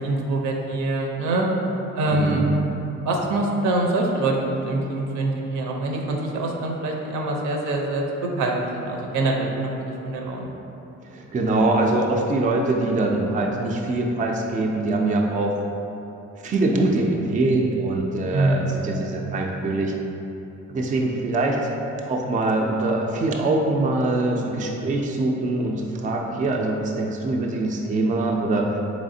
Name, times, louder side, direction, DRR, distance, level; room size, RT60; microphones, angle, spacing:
voice 1, 0.0-1.5 1.9-2.5 2.8-8.0 8.4-10.5 18.3-18.7, right 2 dB, 80° right, 0 dB, 0.6 m, -24 dB
voice 2, 2.1-2.4 11.1-15.6 16.4-19.9 20.7-21.6 22.0-28.8, right 2 dB, 25° right, 0 dB, 0.4 m, -23 dB
4.1 x 3.1 x 2.6 m, 3.0 s
cardioid pair, 90°, 30 cm